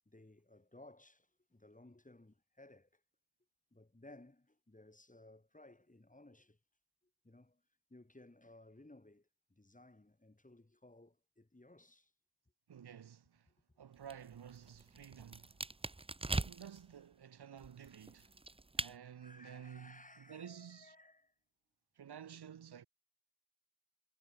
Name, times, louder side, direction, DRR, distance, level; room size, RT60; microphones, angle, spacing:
voice 1, 0.0-3.0 3.7-6.6 7.2-7.6 7.9-12.1 13.5-13.6 19.2-21.3, left 2 dB, 20° left, 3.4 m, -60 dB
voice 2, 12.7-13.5 13.8-15.6 16.4-18.3 18.8-20.9 22.0-22.9, right 8 dB, 85° right, 1.3 m, -52 dB
sound 1, 14.0-16.9 17.6-19.0, right 2 dB, 15° right, 0.7 m, -41 dB
cardioid pair, 45°, 38 cm